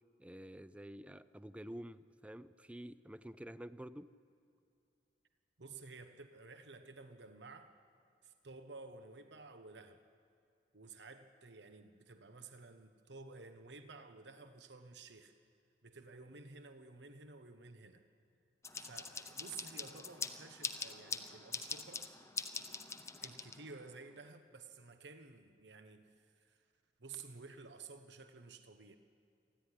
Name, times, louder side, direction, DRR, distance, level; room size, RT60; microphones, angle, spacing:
voice 1, 0.2-4.1, equal, 5° right, 0.5 m, -49 dB
voice 2, 5.6-7.7 8.2-10.0 10.7-15.3 15.8-18.0 18.7-22.1 23.2-26.6 27.0-29.0, right 4 dB, 75° right, 1.2 m, -53 dB
sound 1, 18.6-23.9, left 4 dB, 15° left, 0.8 m, -44 dB
27.5 x 11.5 x 9.9 m
head